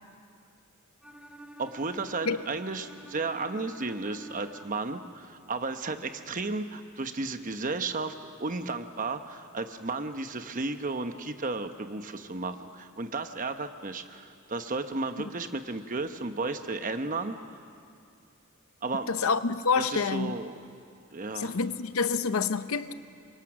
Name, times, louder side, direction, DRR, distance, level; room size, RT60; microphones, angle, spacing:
Bowed string instrument, 1.0-5.0, right 1 dB, 5° right, 1.0 m, -49 dB
voice 1, 1.6-8.1 8.4-17.6 18.8-19.1 19.8-20.6 21.1-21.6, right 3 dB, 35° right, 8 dB, 0.9 m, -33 dB
voice 2, 19.1-20.3 21.4-22.9, left 5 dB, 75° left, 12 dB, 0.8 m, -27 dB
27.5 x 24.0 x 6.1 m, 2.4 s
head